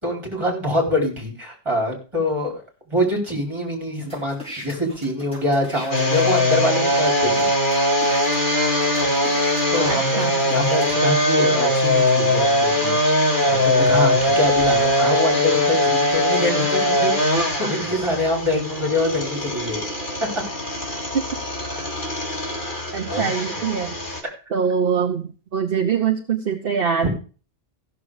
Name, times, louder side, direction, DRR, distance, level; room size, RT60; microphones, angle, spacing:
voice 1, 0.0-2.6 2.9-7.5 9.7-10.2 10.5-19.9 20.3-20.4 24.2-24.3 27.0-27.1, left 1 dB, 25° right, 0 dB, 4.4 m, -25 dB
sound 1, 4.0-6.5 7.1-7.2 7.4-10.9, equal, 5° left, 6.9 m, -39 dB
sound 2, 5.9-24.2, left 1 dB, 50° left, 2.7 m, -21 dB
voice 2, 9.9-10.5 21.1-21.3 22.9-24.0 24.5-27.1, right 7 dB, 65° right, 5 dB, 1.1 m, -23 dB
14.5 x 7.1 x 4.9 m, 0.36 s
omnidirectional pair, 1.1 m